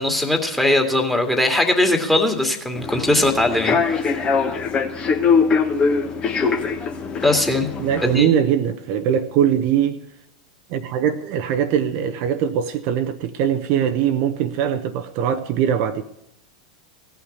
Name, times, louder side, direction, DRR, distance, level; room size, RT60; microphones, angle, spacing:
voice 1, 0.0-4.2 7.2-7.7 8.1-8.3, left 1 dB, 5° left, 2.2 m, -20 dB
Human voice / Subway metro underground, 2.7-8.2, left 5 dB, 30° left, 1.5 m, -22 dB
voice 2, 7.8-10.0 10.7-16.0, right 9 dB, 50° right, 0.8 m, -21 dB
17.0 x 5.8 x 9.7 m
figure-of-eight pair, 90°, 4 cm